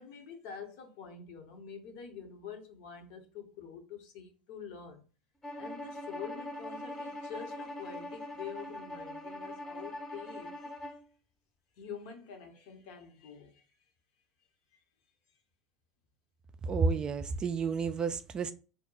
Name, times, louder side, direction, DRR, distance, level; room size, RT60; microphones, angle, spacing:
voice 1, 0.0-5.0 5.6-10.9 11.8-13.7 14.7-14.8, left 7 dB, 55° left, 0.8 m, -46 dB
Bowed string instrument, 5.4-11.0, left 1 dB, 15° left, 0.7 m, -42 dB
voice 2, 16.6-18.5, right 5 dB, 25° right, 0.3 m, -30 dB
2.7 x 2.1 x 3.8 m
figure-of-eight pair, 75°, 3 cm